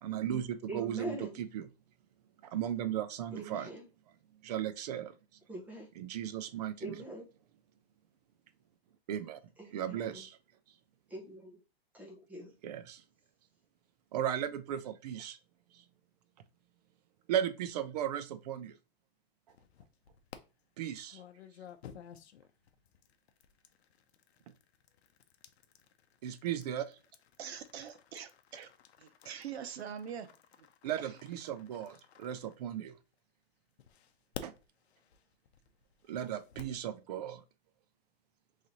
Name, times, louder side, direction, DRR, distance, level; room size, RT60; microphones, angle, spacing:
voice 1, 0.0-1.7 2.4-3.7 4.4-5.1 6.0-7.0 9.1-9.4 9.7-10.4 12.6-13.0 14.1-15.4 15.7-15.8 17.3-18.8 20.8-21.2 26.2-26.9 30.8-32.9 34.4-34.5 36.1-37.4, right 10 dB, 40° right, 0.4 m, -36 dB
voice 2, 0.7-1.4 3.3-3.9 5.5-5.9 6.8-7.3 9.6-10.2 11.1-11.6 11.9-12.5, right 1 dB, 5° right, 0.7 m, -43 dB
sound 1, 19.5-20.4 21.1-33.1 33.8-36.8, left 9 dB, 90° left, 0.6 m, -53 dB
voice 3, 27.4-28.7 29.0-30.3 30.6-30.7 31.0-31.2, right 8 dB, 80° right, 0.8 m, -44 dB
3.2 x 2.7 x 3.8 m
supercardioid pair, 160°, 31 cm